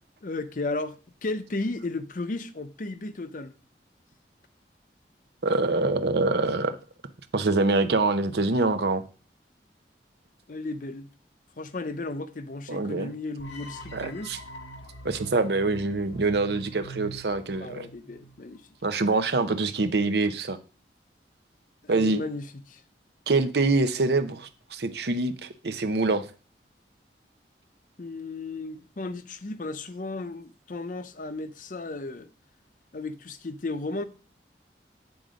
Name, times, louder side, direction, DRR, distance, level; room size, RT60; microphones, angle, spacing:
voice 1, 0.2-1.0 1.2-3.5 10.5-11.1 11.6-14.3 17.6-18.6 21.8-22.8 28.0-32.3 32.9-34.0, left 2 dB, 50° left, 0.6 m, -34 dB
voice 2, 5.4-6.8 7.3-9.0 12.7-13.1 13.9-14.4 15.0-17.9 18.8-20.6 21.9-22.2 23.3-26.3, right 3 dB, 65° right, 0.7 m, -25 dB
sound 1, 13.4-18.5, right 2 dB, 85° left, 1.0 m, -44 dB
9.0 x 3.9 x 5.1 m
head